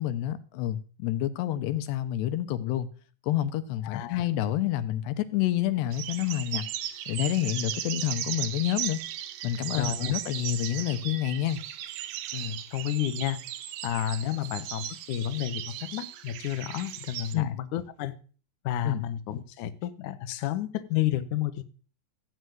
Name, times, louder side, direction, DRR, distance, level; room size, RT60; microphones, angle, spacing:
voice 1, 0.0-2.9 3.2-6.6 7.1-9.0 9.4-11.6 17.3-17.6 18.8-19.0, left 12 dB, 80° left, 3.2 m, -28 dB
voice 2, 3.8-4.2 9.8-10.1 12.3-13.4 13.8-18.1 18.6-21.6, left 11 dB, 65° left, 2.1 m, -31 dB
sound 1, 5.9-17.3, right 12 dB, 90° right, 3.3 m, -37 dB
15.5 x 6.5 x 9.4 m
omnidirectional pair, 4.8 m